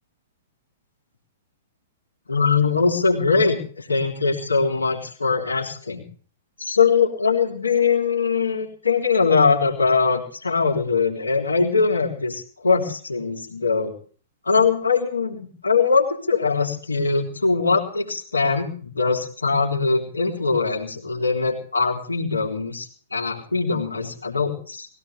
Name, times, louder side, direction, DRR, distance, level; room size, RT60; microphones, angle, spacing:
voice 1, 2.3-6.0 6.6-13.9 14.5-22.9 23.1-24.9, left 4 dB, 80° left, 0 dB, 3.5 m, -21 dB
20.5 x 16.5 x 3.4 m, 0.43 s
figure-of-eight pair, 110°, 0 cm